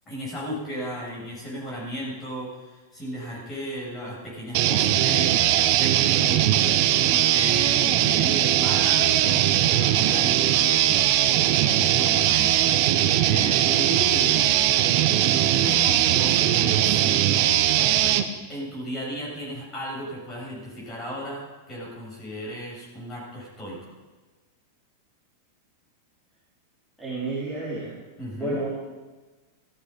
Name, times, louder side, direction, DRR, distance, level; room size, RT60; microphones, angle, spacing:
voice 1, 0.1-6.8 7.1-11.2 11.6-12.6 13.2-14.9 15.3-17.6 18.5-23.8 28.2-28.6, equal, 15° left, -4 dB, 6.3 m, -35 dB
sound 1, 4.5-18.3, right 12 dB, 40° right, 0.9 m, -20 dB
voice 2, 27.0-27.9 28.3-28.7, right 2 dB, ahead, -11 dB, 3.2 m, -30 dB
16.0 x 14.5 x 5.2 m, 1.2 s
supercardioid pair, 180°, 0 cm